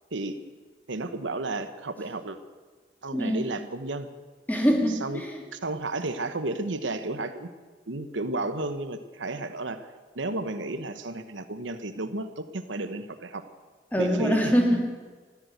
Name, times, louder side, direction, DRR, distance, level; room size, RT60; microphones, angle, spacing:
voice 1, 0.9-2.4 3.0-4.1 5.0-5.2 5.5-7.5 7.9-9.9 10.1-13.4 14.0-14.5, right 2 dB, 90° right, 10 dB, 1.0 m, -32 dB
voice 2, 3.1-3.5 4.5-5.4 13.9-14.9, equal, 10° left, 2 dB, 2.1 m, -24 dB
15.5 x 11.0 x 7.9 m, 1.4 s
head